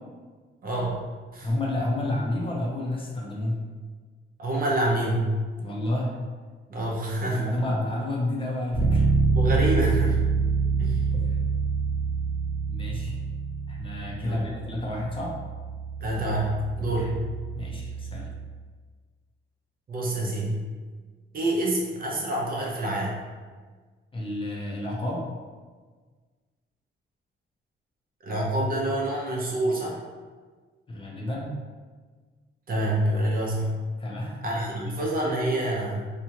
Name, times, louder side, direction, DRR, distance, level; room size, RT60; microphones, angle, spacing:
voice 1, 0.6-0.9 1.3-1.5 4.4-5.3 6.7-7.5 9.4-10.2 10.8-11.0 14.2-14.4 16.0-17.1 19.9-20.6 21.3-23.1 28.2-29.9 32.7-33.7 34.4-36.0, right 1 dB, 45° right, -3 dB, 0.7 m, -27 dB
voice 2, 1.4-3.6 5.6-6.2 7.3-9.1 11.1-11.4 12.7-13.2 13.7-15.4 16.9-17.1 17.5-18.3 24.1-25.3 30.9-31.5 34.0-34.9, left 1 dB, 25° left, -3 dB, 0.6 m, -30 dB
Bass guitar, 8.7-18.5, right 4 dB, 10° right, 1.0 m, -27 dB
2.7 x 2.3 x 2.9 m, 1.5 s
cardioid pair, 105°, 20 cm